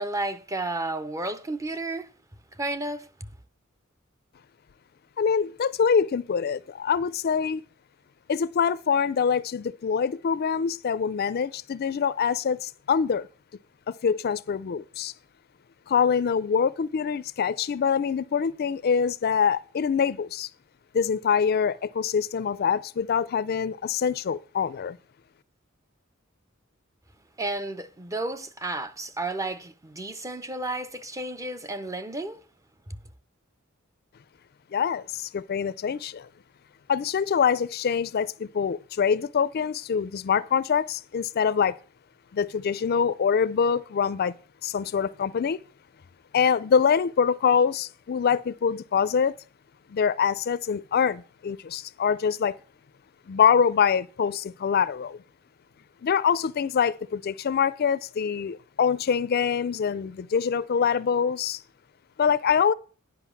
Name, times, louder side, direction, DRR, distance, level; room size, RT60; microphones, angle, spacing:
voice 1, 0.0-2.1 2.5-3.3 27.4-32.4 32.9-33.0, right 2 dB, 15° right, 0.5 m, -32 dB
voice 2, 5.2-7.6 8.3-13.3 14.0-15.1 15.9-20.5 20.9-25.0 34.7-36.3 36.9-41.8 42.3-44.3 44.6-45.6 46.3-49.4 49.9-52.6 53.3-55.2 56.0-61.6 62.2-62.7, left 6 dB, 50° left, 0.4 m, -24 dB
10.0 x 5.2 x 7.0 m
head